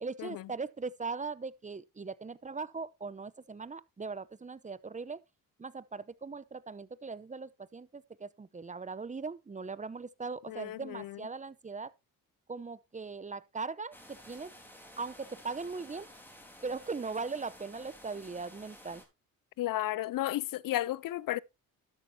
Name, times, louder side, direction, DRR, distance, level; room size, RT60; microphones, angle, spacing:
voice 1, 0.0-5.2 5.6-11.9 12.5-14.5 15.0-16.1 16.6-19.0, right 4 dB, 20° right, 0.7 m, -39 dB
voice 2, 10.5-11.2 19.6-21.4, left 15 dB, 65° left, 0.6 m, -33 dB
sound 1, 13.9-19.0, equal, 5° left, 3.9 m, -53 dB
12.5 x 8.6 x 2.8 m
supercardioid pair, 65°, 36 cm